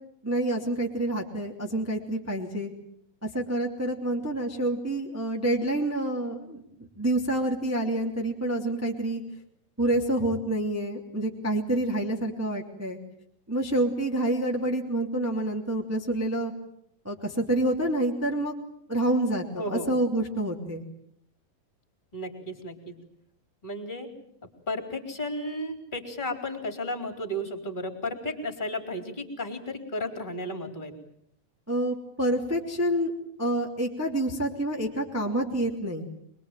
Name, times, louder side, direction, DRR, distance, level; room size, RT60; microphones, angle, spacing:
voice 1, 0.2-2.7 3.2-6.6 7.0-9.2 9.8-13.0 13.5-16.5 17.0-18.5 18.9-20.8 31.7-33.1 33.4-36.0, right 1 dB, 5° right, 1 dB, 2.4 m, -27 dB
voice 2, 19.6-19.9 22.1-22.9 23.6-24.1 24.7-30.9, left 1 dB, 15° left, 6 dB, 3.8 m, -33 dB
26.0 x 22.0 x 9.1 m, 0.71 s
omnidirectional pair, 4.0 m